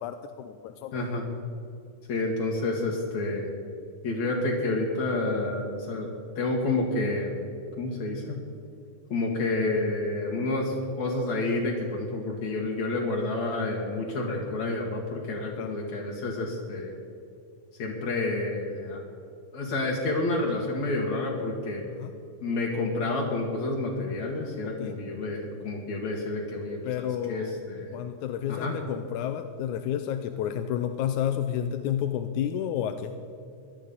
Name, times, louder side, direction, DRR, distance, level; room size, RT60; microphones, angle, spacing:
voice 1, 0.0-1.1 15.6-15.7 22.0-22.1 24.8-25.0 26.8-27.6 27.9-33.1, left 9 dB, 90° left, 8 dB, 2.1 m, -30 dB
voice 2, 0.9-1.3 2.1-3.5 4.0-6.1 6.4-7.4 7.8-8.4 9.1-16.9 17.8-19.0 19.5-21.9 22.4-28.0 28.5-28.8, left 2 dB, 65° left, -2 dB, 2.9 m, -29 dB
17.5 x 12.0 x 5.4 m, 2.6 s
omnidirectional pair, 3.5 m